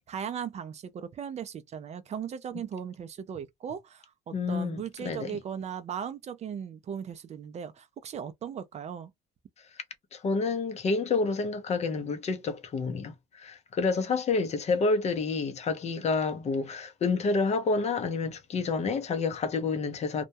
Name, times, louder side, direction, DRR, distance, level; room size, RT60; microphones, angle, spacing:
voice 1, 0.0-9.1, right 8 dB, 40° right, 0.4 m, -38 dB
voice 2, 4.3-5.4 10.1-20.2, left 4 dB, 40° left, 0.6 m, -29 dB
2.2 x 2.1 x 2.6 m
cardioid pair, 110°, 17 cm